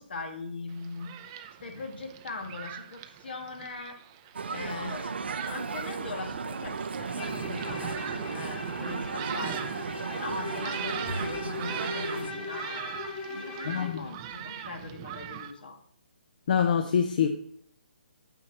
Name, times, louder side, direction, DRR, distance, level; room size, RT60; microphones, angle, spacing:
voice 1, 0.0-4.0 4.5-5.2 5.4-13.0 13.4-15.8, left 3 dB, 70° left, 5 dB, 1.6 m, -41 dB
Thunderstorm, 0.7-15.5, right 10 dB, 20° right, 0.5 m, -41 dB
sound 1, 4.3-12.3, right 5 dB, 80° right, 0.6 m, -35 dB
Bowed string instrument, 7.1-14.0, left 3 dB, 25° left, 2.8 m, -39 dB
voice 2, 13.6-14.1 16.5-17.3, left 7 dB, 50° left, 8 dB, 0.6 m, -25 dB
9.1 x 7.6 x 2.9 m, 0.69 s
hypercardioid pair, 160°, 6 cm